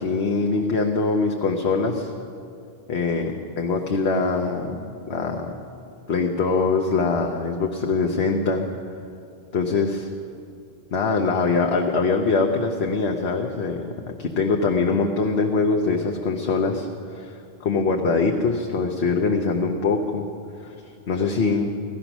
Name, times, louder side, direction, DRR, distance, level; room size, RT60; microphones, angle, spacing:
voice 1, 0.0-2.1 2.9-5.5 6.1-8.7 9.5-10.1 10.9-20.3 20.6-20.7 21.1-21.8, left 4 dB, 85° left, 2 dB, 1.1 m, -23 dB
17.5 x 13.0 x 6.0 m, 2.5 s
omnidirectional pair, 1.0 m